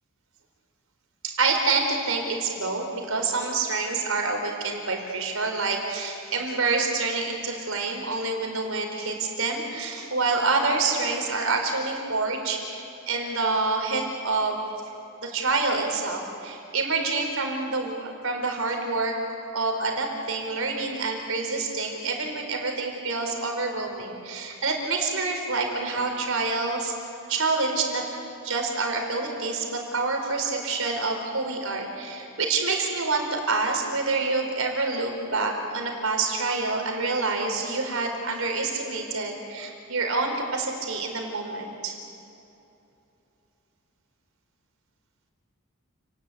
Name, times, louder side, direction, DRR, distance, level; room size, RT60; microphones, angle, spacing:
voice 1, 1.2-14.6 15.2-19.1 19.5-26.9 27.3-28.0 28.4-41.9, right 3 dB, 75° right, 3 dB, 4.6 m, -27 dB
29.5 x 19.5 x 8.7 m, 2.8 s
head